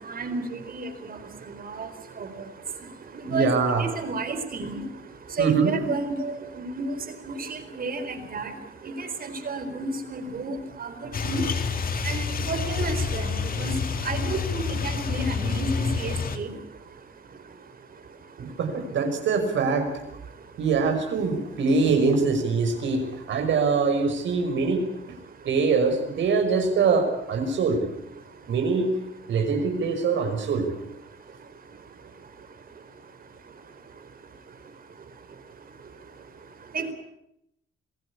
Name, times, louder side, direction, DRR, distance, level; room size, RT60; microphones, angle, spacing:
voice 1, 0.1-1.2 1.5-1.9 2.2-2.3 3.3-3.5 3.8-4.8 5.4-6.9 7.4-8.5 9.0-11.0 11.2-11.4 12.0-13.8 14.0-16.5 36.7-36.9, right 3 dB, 45° right, 9 dB, 4.3 m, -31 dB
voice 2, 3.2-3.8 5.4-5.7 14.7-14.8 18.4-19.9 20.6-24.8 25.4-27.8 28.5-28.9 29.3-30.7, right 4 dB, 70° right, 5 dB, 5.8 m, -23 dB
sound 1, 11.1-16.4, left 5 dB, 45° left, 2.5 m, -28 dB
26.5 x 16.5 x 8.4 m, 0.79 s
cardioid pair, 90°, 20 cm